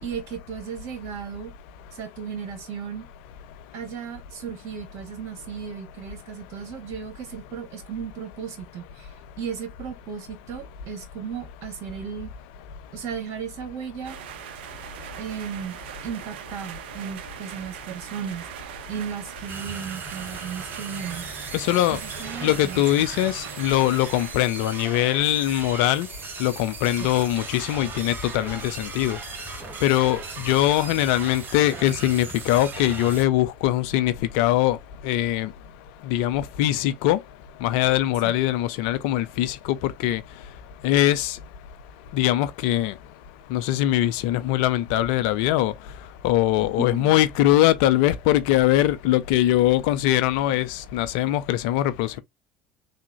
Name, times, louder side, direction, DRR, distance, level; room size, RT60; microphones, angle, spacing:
voice 1, 0.0-1.5 1.9-3.1 3.7-9.1 9.4-12.3 12.9-14.2 15.2-15.8 16.0-21.3 21.9-22.8 25.3-25.4 27.0-27.1 38.2-38.3 46.8-47.2, right 7 dB, 55° right, 1.2 m, -35 dB
sound 1, 14.0-24.4, right 11 dB, 70° right, 0.4 m, -40 dB
sound 2, 19.5-33.2, right 5 dB, 35° right, 0.9 m, -38 dB
voice 2, 21.5-22.0 22.4-26.1 26.4-29.2 29.8-34.8 35.0-35.5 36.1-37.2 37.6-39.6 39.8-40.2 40.8-41.4 42.1-42.9 43.5-45.7 46.2-52.2, left 14 dB, 65° left, 0.4 m, -22 dB
3.4 x 2.1 x 2.9 m
hypercardioid pair, 70°, 6 cm